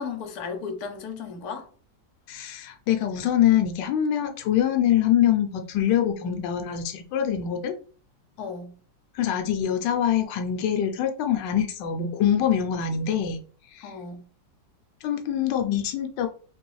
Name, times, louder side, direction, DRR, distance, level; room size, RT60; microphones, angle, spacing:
voice 1, 0.0-1.7 8.4-8.7 13.8-14.2, left 5 dB, 65° left, 1.3 m, -34 dB
voice 2, 2.3-7.7 9.1-13.4 13.7-13.9 15.0-16.3, left 10 dB, 90° left, 1.2 m, -24 dB
3.8 x 3.0 x 3.1 m
omnidirectional pair, 1.9 m